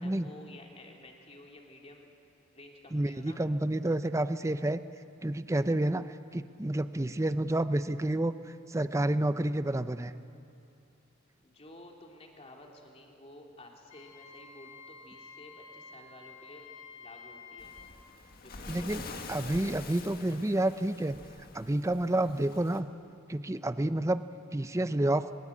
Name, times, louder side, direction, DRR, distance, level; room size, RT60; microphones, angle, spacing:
voice 1, 0.0-2.1 2.5-3.4 11.4-16.7 17.0-17.7 18.4-19.1, left 1 dB, 30° left, 0 dB, 2.9 m, -52 dB
voice 2, 2.9-4.8 5.2-6.1 6.3-8.3 8.7-10.1 18.7-19.0 19.3-21.2 21.5-22.9 23.3-24.2 24.5-25.3, right 1 dB, 15° right, 12 dB, 0.6 m, -29 dB
Wind instrument woodwind instrument, 13.9-18.0, left 5 dB, 70° left, 2.3 m, -50 dB
Waves surf, 17.6-22.8, left 3 dB, 50° left, 1.7 m, -45 dB
22.0 x 22.0 x 8.5 m, 2.7 s
head